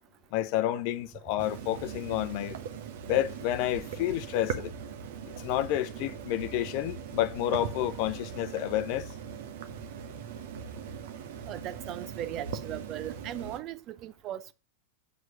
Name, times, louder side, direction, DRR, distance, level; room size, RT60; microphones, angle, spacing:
voice 1, 0.3-2.6 3.1-4.7 5.4-9.1, left 13 dB, 45° left, 0.7 m, -30 dB
sound 1, 1.4-13.6, right 7 dB, 55° right, 1.1 m, -40 dB
voice 2, 11.5-14.5, right 12 dB, 35° right, 0.6 m, -38 dB
8.1 x 4.6 x 6.4 m
figure-of-eight pair, 90°, 0 cm